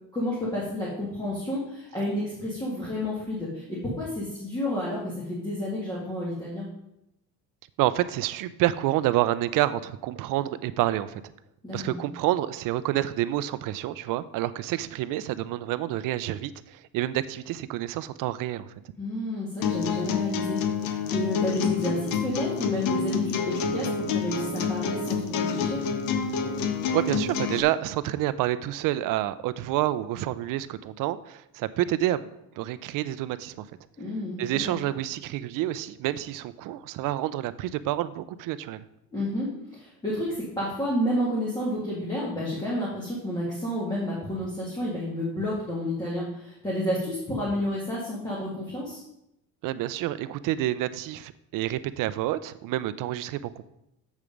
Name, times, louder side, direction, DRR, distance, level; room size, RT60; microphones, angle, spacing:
voice 1, 0.1-6.7 11.6-12.0 19.0-25.8 34.0-34.8 39.1-49.0, left 1 dB, 10° left, -7 dB, 1.7 m, -30 dB
voice 2, 7.8-11.2 11.7-18.7 26.9-32.3 32.6-33.7 34.4-38.8 49.6-53.6, right 14 dB, 65° right, 15 dB, 0.5 m, -28 dB
sound 1, 19.6-27.6, left 6 dB, 70° left, 1.0 m, -28 dB
7.4 x 6.7 x 5.2 m, 0.83 s
cardioid pair, 155°, 35 cm